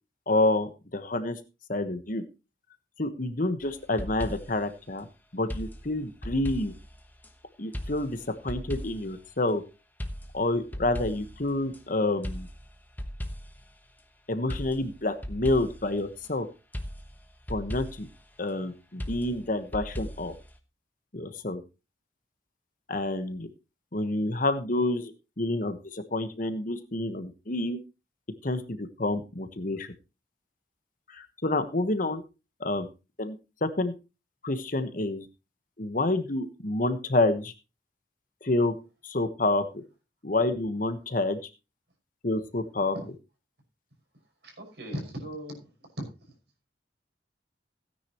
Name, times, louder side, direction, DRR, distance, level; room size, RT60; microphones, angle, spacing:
voice 1, 0.3-1.4 1.7-2.2 3.0-5.1 5.3-6.7 7.6-9.6 10.3-12.5 14.3-16.5 17.5-18.1 18.4-20.3 21.1-21.6 22.9-23.5 23.9-27.8 28.4-29.9 31.1-32.2 32.6-32.9 33.2-33.9 34.4-35.3 35.8-37.5 38.4-38.7 39.0-39.8 40.2-41.4 42.2-43.0, left 2 dB, 45° left, 9 dB, 1.2 m, -28 dB
sound 1, 3.6-4.7 5.5-7.3 7.7-9.2 10.0-11.8 12.2-13.7 14.5-16.3 16.7-18.2 19.0-20.6, equal, 10° left, 1.2 m, -38 dB
voice 2, 44.4-45.7 46.0-46.1, equal, 65° right, 3 dB, 5.7 m, -37 dB
16.5 x 9.7 x 3.0 m, 0.29 s
head